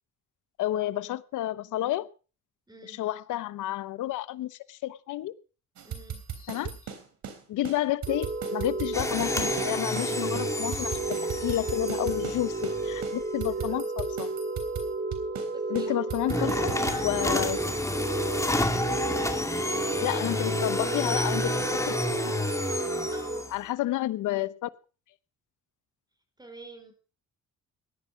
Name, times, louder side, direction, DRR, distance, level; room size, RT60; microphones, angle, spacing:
voice 1, 0.6-2.1 2.9-5.3 6.5-6.7 7.5-11.0 11.4-14.3 15.7-16.7 17.0-17.6 20.0-22.0 22.2-22.4 23.5-24.7, left 14 dB, 80° left, 0.9 m, -30 dB
voice 2, 2.7-3.0 5.8-6.2 15.5-16.0 16.3-17.3 20.1-20.9 23.1-23.5 26.4-26.9, right 2 dB, 15° right, 5.2 m, -46 dB
sound 1, 5.8-7.4 7.6-7.8 8.0-10.1 10.3-12.4 12.6-12.8 13.0-15.5 15.7-17.0, right 8 dB, 70° right, 3.5 m, -37 dB
sound 2, 8.1-23.4, right 2 dB, 30° right, 2.7 m, -32 dB
sound 3, 8.9-13.4 16.3-23.6, left 1 dB, 10° left, 2.2 m, -30 dB
17.0 x 11.0 x 5.0 m
cardioid pair, 90°, 30 cm